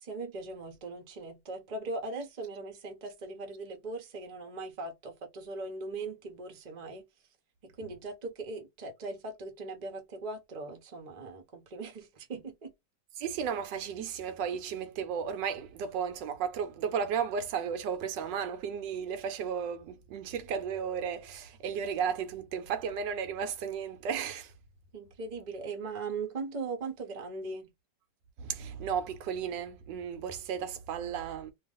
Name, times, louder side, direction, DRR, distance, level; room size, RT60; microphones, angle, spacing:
voice 1, 0.0-7.0 7.6-12.7 24.9-27.7, right 3 dB, 35° right, 0.7 m, -39 dB
voice 2, 13.2-24.5 28.4-31.5, right 7 dB, 80° right, 1.3 m, -34 dB
2.9 x 2.4 x 3.6 m
omnidirectional pair, 1.9 m